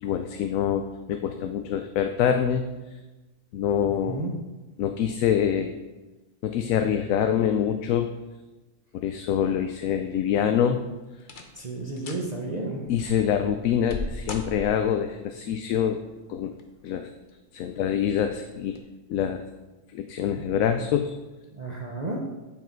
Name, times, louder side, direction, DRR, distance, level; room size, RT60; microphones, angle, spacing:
voice 1, 0.0-2.6 3.5-4.2 4.8-5.7 6.4-8.1 8.9-10.8 12.9-16.0 16.3-16.5 16.8-17.1 17.5-18.8 19.1-19.4 19.9-21.1, left 9 dB, 85° left, 7 dB, 1.0 m, -25 dB
sound 1, 10.2-10.7 11.2-11.6 12.0-12.3 12.9-15.0 16.3-16.8 17.3-17.4 18.1-18.3 18.7-18.8, left 3 dB, 40° left, 1.0 m, -38 dB
voice 2, 11.6-12.8 21.5-22.2, right 2 dB, 35° right, -1 dB, 1.0 m, -32 dB
8.3 x 7.4 x 4.5 m, 1.2 s
omnidirectional pair, 1.4 m